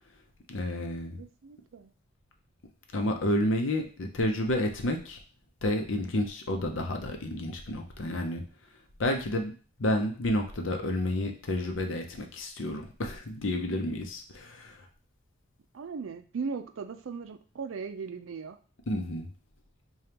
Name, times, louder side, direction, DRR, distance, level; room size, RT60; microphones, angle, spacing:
voice 1, 0.5-1.2 2.9-5.2 5.6-8.4 9.0-9.5 9.8-14.8 18.9-19.3, left 1 dB, 75° left, 4 dB, 0.7 m, -30 dB
voice 2, 1.2-1.9 15.7-18.6, right 5 dB, 80° right, 8 dB, 0.4 m, -38 dB
5.0 x 2.3 x 2.9 m, 0.38 s
head